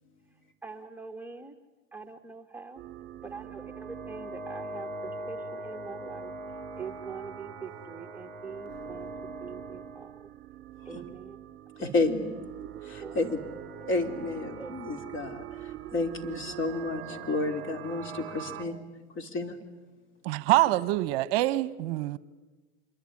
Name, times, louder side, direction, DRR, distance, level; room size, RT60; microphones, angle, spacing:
voice 1, 0.6-1.5 1.9-2.8 3.2-6.3 6.8-10.1 10.9-11.4 11.8-11.9 13.0-13.2 14.6-14.7, right 5 dB, 5° right, 1.4 m, -43 dB
sound 1, 2.8-18.6, right 5 dB, 35° right, 2.2 m, -42 dB
voice 2, 11.8-12.3 12.8-13.4 13.9-18.8 19.2-19.6 20.5-20.6, left 3 dB, 35° left, 3.4 m, -31 dB
voice 3, 20.2-22.2, right 17 dB, 55° right, 0.9 m, -25 dB
26.0 x 23.0 x 9.8 m
hypercardioid pair, 115°, 35 cm